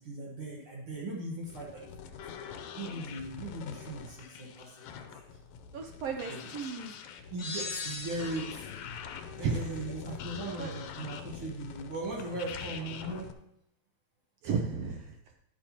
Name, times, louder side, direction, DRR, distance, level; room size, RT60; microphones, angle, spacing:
voice 1, 0.0-2.1 2.8-5.2 6.3-6.7 7.3-8.7 9.2-13.3, right 2 dB, 55° right, -4 dB, 2.0 m, -39 dB
sound 1, 1.4-13.3, left 7 dB, 80° left, 2.0 m, -44 dB
voice 2, 5.7-6.9 9.4-9.6 10.6-10.7 14.4-15.1, right 5 dB, 75° right, 3 dB, 1.5 m, -33 dB
sound 2, 7.4-8.8, left 3 dB, 65° left, 1.6 m, -38 dB
11.0 x 8.6 x 2.9 m, 0.78 s
omnidirectional pair, 3.3 m